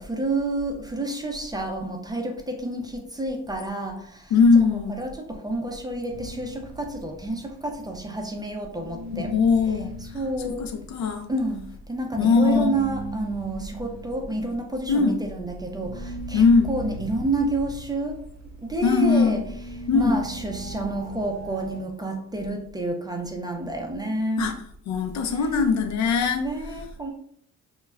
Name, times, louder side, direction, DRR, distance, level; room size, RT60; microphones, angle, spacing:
voice 1, 0.0-4.3 4.9-9.3 10.0-10.6 11.3-18.2 18.6-19.4 19.8-24.5 26.3-27.1, right 2 dB, 15° right, 2 dB, 0.4 m, -29 dB
voice 2, 4.3-4.9 9.2-9.9 10.4-11.3 12.2-12.8 14.9-15.2 16.3-16.7 18.8-19.4 19.9-20.2 24.4-24.5 24.9-26.4, left 5 dB, 65° left, 6 dB, 0.5 m, -20 dB
sound 1, 6.1-8.5 8.7-21.8, right 2 dB, 60° right, 0.6 m, -39 dB
2.2 x 2.1 x 3.4 m, 0.64 s
cardioid pair, 90°, 30 cm